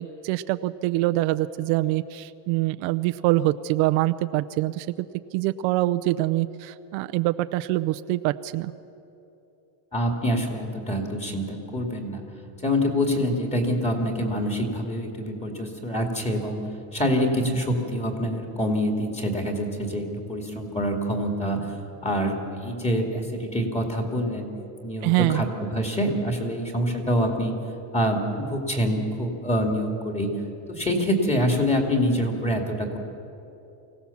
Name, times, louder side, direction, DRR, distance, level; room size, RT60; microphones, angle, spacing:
voice 1, 0.0-8.7 25.0-25.4, right 17 dB, 85° right, 12 dB, 0.7 m, -25 dB
voice 2, 9.9-12.2 12.6-21.8 22.0-24.6 24.8-27.6 27.9-30.3 30.7-33.0, equal, 15° left, 2 dB, 2.5 m, -26 dB
24.5 x 17.0 x 7.2 m, 2.9 s
cardioid pair, 155°, 47 cm